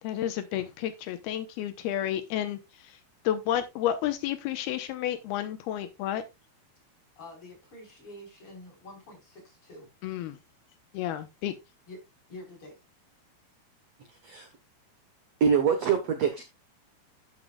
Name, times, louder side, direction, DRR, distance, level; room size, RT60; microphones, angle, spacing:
voice 1, 0.0-2.6 3.2-6.2 10.0-10.4 10.9-11.5, left 11 dB, 85° left, 2.7 m, -31 dB
voice 2, 7.1-9.9 11.9-12.0 12.3-12.8, left 1 dB, 35° left, 5.1 m, -47 dB
voice 3, 15.4-16.4, right 7 dB, 70° right, 1.5 m, -24 dB
12.0 x 8.0 x 2.3 m
omnidirectional pair, 4.5 m